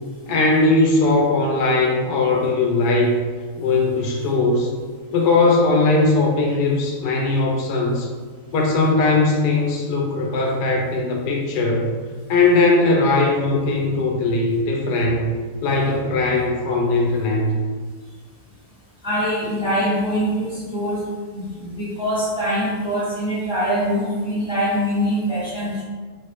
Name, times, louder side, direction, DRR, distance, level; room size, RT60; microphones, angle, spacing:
voice 1, 0.3-3.2 3.6-4.7 5.1-8.1 8.5-11.9 12.3-15.3 15.6-17.5, left 3 dB, 85° left, 0 dB, 1.2 m, -19 dB
voice 2, 19.0-21.0 21.3-25.8, equal, 5° right, -12 dB, 1.2 m, -23 dB
3.2 x 2.8 x 3.0 m, 1.5 s
omnidirectional pair, 1.7 m